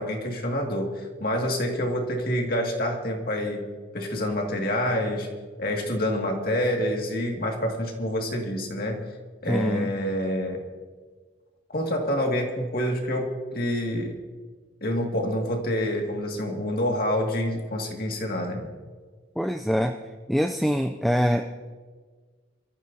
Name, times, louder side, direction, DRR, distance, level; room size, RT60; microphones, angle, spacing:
voice 1, 0.0-3.7 3.9-5.3 5.6-9.0 9.4-10.6 11.7-13.3 13.5-14.2 14.8-18.7, equal, 45° left, 1 dB, 2.1 m, -27 dB
voice 2, 9.5-9.9 19.4-20.0 20.3-21.4, equal, ahead, 4 dB, 0.4 m, -24 dB
24.5 x 14.0 x 2.8 m, 1.5 s
head